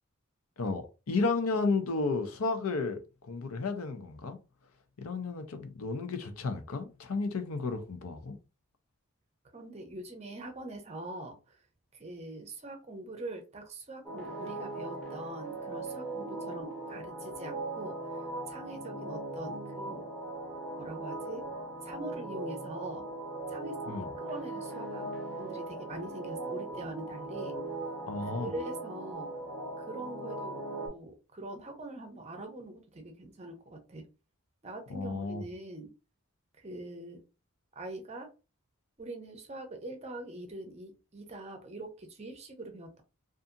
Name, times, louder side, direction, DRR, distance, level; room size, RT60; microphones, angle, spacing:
voice 1, 0.6-4.4 5.0-8.4 23.9-24.1 28.1-28.5 34.9-35.4, left 3 dB, 80° left, 0.6 m, -33 dB
voice 2, 9.5-11.6 11.9-20.1 20.8-21.5 21.8-23.0 23.5-25.1 25.4-27.6 28.4-29.3 29.8-34.1 34.6-35.9 36.6-37.2 37.8-38.3 39.0-43.0, right 1 dB, 30° right, 0.6 m, -43 dB
sound 1, 14.0-30.9, right 2 dB, 5° left, 0.8 m, -39 dB
2.7 x 2.5 x 2.5 m
head